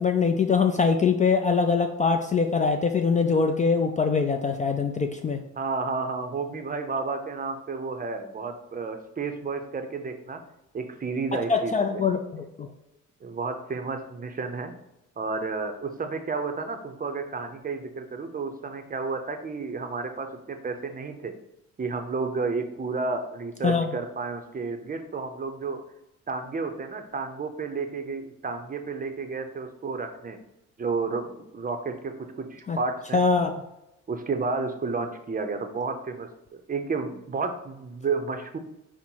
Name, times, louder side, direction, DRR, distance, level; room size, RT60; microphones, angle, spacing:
voice 1, 0.0-5.4 11.3-12.7 23.6-23.9 32.7-32.8 33.1-33.5, left 5 dB, 25° left, 5 dB, 0.3 m, -23 dB
voice 2, 5.6-10.4 10.7-11.7 13.2-14.7 15.2-21.4 21.8-25.8 26.3-30.4 30.8-33.2 34.1-38.6, right 4 dB, 30° right, 6 dB, 0.6 m, -31 dB
5.3 x 2.1 x 4.5 m, 0.87 s
cardioid pair, 90°, 30 cm